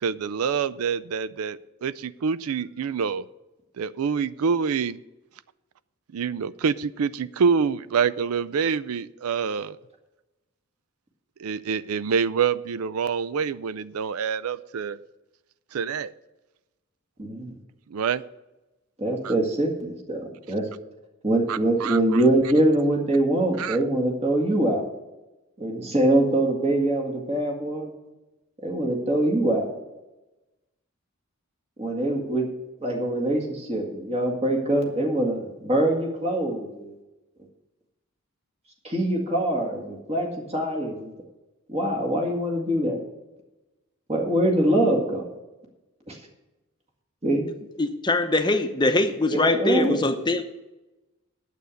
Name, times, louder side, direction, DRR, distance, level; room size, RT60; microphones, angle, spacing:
voice 1, 0.0-3.2 3.8-5.0 6.1-9.8 11.4-15.0 15.7-16.1 17.9-18.2 19.2-19.3 21.5-22.2 23.6-23.8, right 6 dB, 85° right, 17 dB, 0.4 m, -26 dB
voice 2, 17.2-17.6 19.0-20.6 21.2-24.9 25.6-27.9 28.6-29.7 31.8-32.5 32.8-36.9 38.8-41.1 41.7-43.0 44.1-45.2 46.1-46.2 47.2-47.5 49.3-50.0, right 1 dB, 30° right, 1 dB, 2.0 m, -24 dB
voice 3, 47.8-50.4, left 2 dB, 20° left, 7 dB, 0.8 m, -22 dB
9.2 x 8.3 x 6.4 m, 1.0 s
head